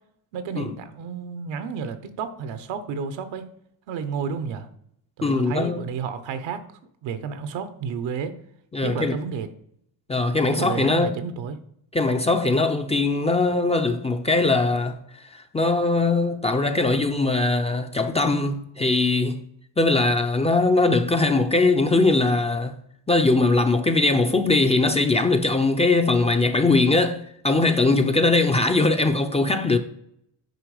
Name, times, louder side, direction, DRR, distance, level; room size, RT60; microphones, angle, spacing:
voice 1, 0.3-3.5 3.9-4.7 5.2-6.6 7.0-8.3 8.8-9.5 10.5-11.6, right 6 dB, 75° right, 1.1 m, -31 dB
voice 2, 5.2-5.8 8.7-9.1 10.1-11.1 11.9-15.0 15.3-19.4 19.8-22.8 23.1-27.2 27.4-29.8, left 3 dB, 15° left, 0.5 m, -21 dB
9.3 x 4.7 x 4.9 m
cardioid pair, 115°, 45 cm